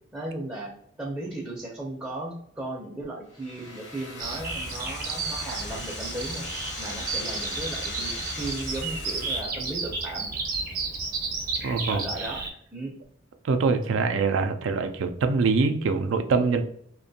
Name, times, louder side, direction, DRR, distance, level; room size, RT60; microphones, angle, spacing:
voice 1, 0.1-0.7 1.0-6.4 6.8-10.3 11.9-12.4 12.7-12.9, right 2 dB, 10° right, -4 dB, 0.4 m, -36 dB
sound 1, 3.3-9.4, left 2 dB, 65° left, 0.8 m, -38 dB
Bird vocalization bird call bird song, 4.2-12.5, right 4 dB, 50° right, 0.6 m, -32 dB
voice 2, 11.6-12.0 13.4-16.6, right 4 dB, 90° right, 8 dB, 0.4 m, -24 dB
2.5 x 2.2 x 2.7 m, 0.67 s
head